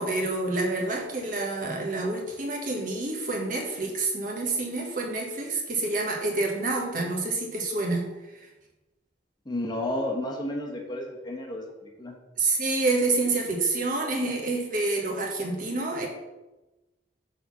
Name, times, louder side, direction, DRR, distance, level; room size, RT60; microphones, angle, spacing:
voice 1, 0.0-8.1 12.4-16.1, right 3 dB, 45° right, 0 dB, 1.4 m, -28 dB
voice 2, 9.4-11.7 12.0-12.2, left 1 dB, 25° left, 0 dB, 1.1 m, -31 dB
6.5 x 4.2 x 6.0 m, 1.1 s
head